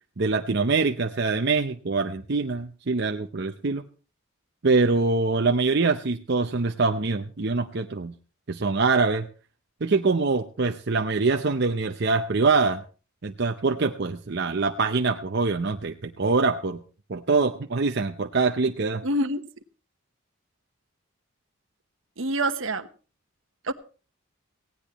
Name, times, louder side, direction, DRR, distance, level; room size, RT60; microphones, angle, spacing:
voice 1, 0.2-3.8 4.6-8.1 8.5-9.3 9.8-12.8 13.2-16.8 17.1-19.0, right 4 dB, 55° right, 5 dB, 0.7 m, -24 dB
voice 2, 19.0-19.4 22.2-22.9 23.6-23.7, right 1 dB, 70° right, 10 dB, 1.0 m, -26 dB
18.5 x 16.5 x 3.0 m, 0.36 s
head